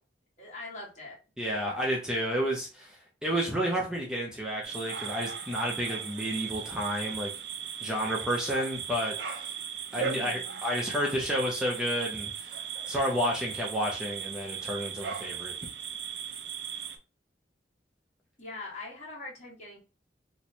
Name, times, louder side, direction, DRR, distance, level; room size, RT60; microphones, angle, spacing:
voice 1, 0.4-1.2 10.1-10.6 18.4-19.8, left 2 dB, 40° left, -4 dB, 1.4 m, -42 dB
voice 2, 1.4-7.3 7.8-9.4 9.9-12.5 12.9-15.5, equal, 5° right, -3 dB, 0.6 m, -31 dB
sound 1, 4.6-17.0, right 7 dB, 75° right, 0.6 m, -37 dB
3.0 x 2.2 x 4.1 m, 0.33 s
head